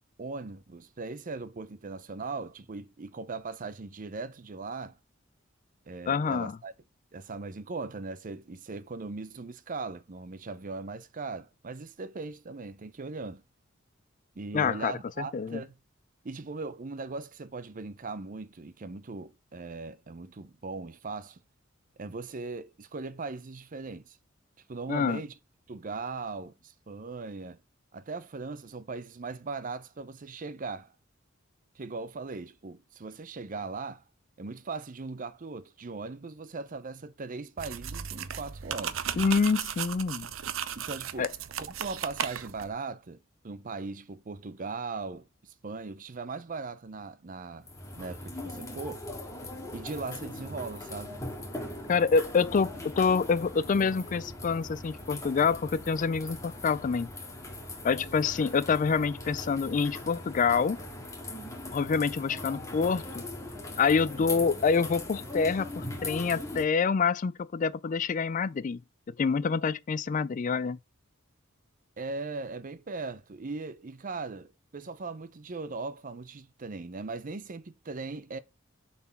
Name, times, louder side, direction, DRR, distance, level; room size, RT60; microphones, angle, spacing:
voice 1, 0.2-5.0 5.9-6.7 7.1-13.4 14.3-15.8 16.2-21.4 22.0-24.2 24.7-25.3 25.7-27.6 27.9-30.9 31.7-34.0 34.4-39.0 40.7-41.3 41.6-47.7 48.0-49.0 49.7-51.2 64.2-64.5 72.0-78.4, right 3 dB, 40° right, 0.6 m, -39 dB
voice 2, 6.1-6.6 14.5-15.6 24.9-25.2 39.2-40.3 41.2-41.3 51.9-57.1 57.8-60.8 61.7-63.2 63.8-68.8 69.2-70.8, left 5 dB, 40° left, 0.4 m, -27 dB
sound 1, 37.6-42.7, right 8 dB, 85° right, 0.7 m, -36 dB
sound 2, 47.6-66.7, left 1 dB, 15° left, 1.9 m, -40 dB
6.9 x 4.3 x 5.6 m
head